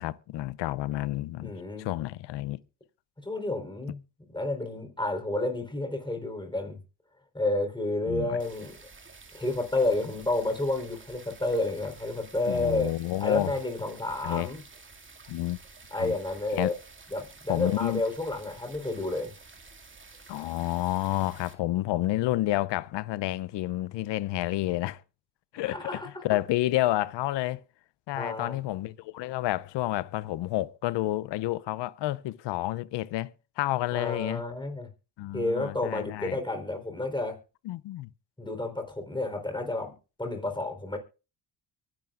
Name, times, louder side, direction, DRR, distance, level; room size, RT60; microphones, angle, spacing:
voice 1, 0.0-1.5 1.8-2.6 8.1-8.4 12.5-13.5 14.2-14.5 15.3-15.6 16.0-16.1 16.6-16.7 17.5-18.0 20.3-25.0 25.5-27.6 28.1-34.4 35.2-36.4 37.6-38.1, left 16 dB, 75° left, 0.7 m, -30 dB
voice 2, 1.4-1.9 3.2-4.0 4.3-6.8 7.3-8.7 9.3-12.9 13.2-14.6 15.9-16.7 17.1-19.3 25.7-26.1 28.1-28.6 33.9-34.9 35.3-37.4 38.4-39.9 40.2-41.0, left 2 dB, 10° left, 4.0 m, -30 dB
sound 1, 8.4-21.5, right 4 dB, 30° right, 2.4 m, -51 dB
23.5 x 11.0 x 2.5 m
cardioid pair, 75°, 42 cm